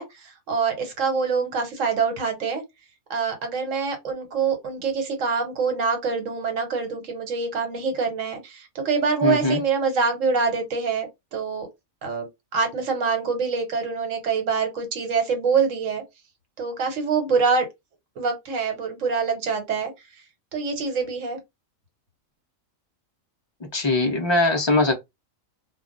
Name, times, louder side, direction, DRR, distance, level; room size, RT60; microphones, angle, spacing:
voice 1, 0.0-2.6 3.1-11.7 12.0-16.0 16.6-17.6 18.2-19.9 20.5-21.4, right 5 dB, 70° right, 1.3 m, -25 dB
voice 2, 9.2-9.6 23.7-25.0, left 2 dB, 40° left, 0.4 m, -21 dB
2.3 x 2.3 x 3.8 m
omnidirectional pair, 1.4 m